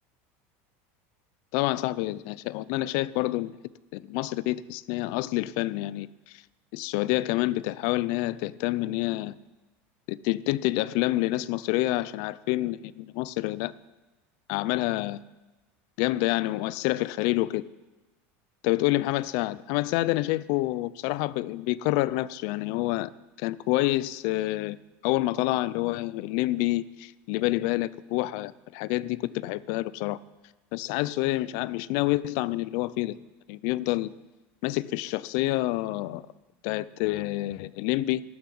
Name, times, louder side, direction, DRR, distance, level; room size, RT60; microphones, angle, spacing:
voice 1, 1.5-3.5 3.9-6.4 6.7-9.4 10.1-13.7 14.5-15.2 16.0-17.6 18.6-23.1 23.4-24.8 25.0-30.2 30.7-33.2 33.5-34.1 34.6-36.2 36.6-38.2, left 18 dB, 55° left, 0.4 m, -28 dB
12.5 x 7.0 x 7.8 m
supercardioid pair, 155°, 7 cm